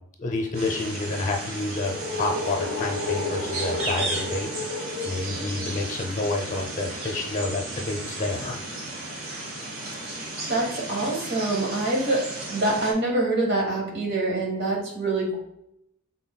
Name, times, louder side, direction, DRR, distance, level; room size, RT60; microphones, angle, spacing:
voice 1, 0.2-4.5 5.0-8.6, left 2 dB, 35° left, 2 dB, 0.7 m, -29 dB
sound 1, 0.5-12.9, equal, 70° right, 1.4 m, -32 dB
voice 2, 10.5-12.2 12.5-15.4, right 2 dB, 50° right, -1 dB, 1.5 m, -25 dB
5.8 x 3.9 x 2.2 m, 0.78 s
head